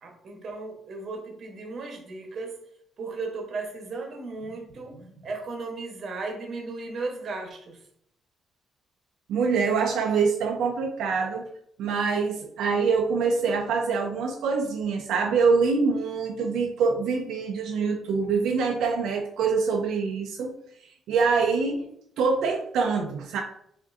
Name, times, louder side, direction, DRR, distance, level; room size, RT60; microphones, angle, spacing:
voice 1, 0.0-2.6 3.0-7.8, right 3 dB, 50° right, 3 dB, 0.8 m, -35 dB
voice 2, 9.3-11.5 11.8-20.6 21.1-21.9 22.2-23.4, right 5 dB, 90° right, 2 dB, 0.4 m, -25 dB
4.8 x 2.5 x 2.4 m, 0.69 s
cardioid pair, 130°, 0 cm